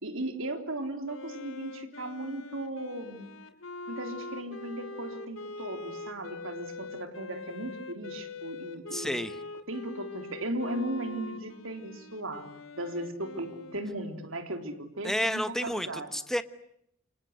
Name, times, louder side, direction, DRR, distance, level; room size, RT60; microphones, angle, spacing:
voice 1, 0.0-3.3 3.9-9.2 9.7-12.5 12.7-16.1, right 1 dB, 75° right, 6 dB, 3.7 m, -37 dB
Wind instrument woodwind instrument, 1.0-14.5, left 3 dB, 85° left, 2.9 m, -43 dB
voice 2, 8.9-9.4 15.0-16.4, equal, ahead, 11 dB, 1.2 m, -31 dB
28.0 x 25.0 x 8.2 m, 0.76 s
head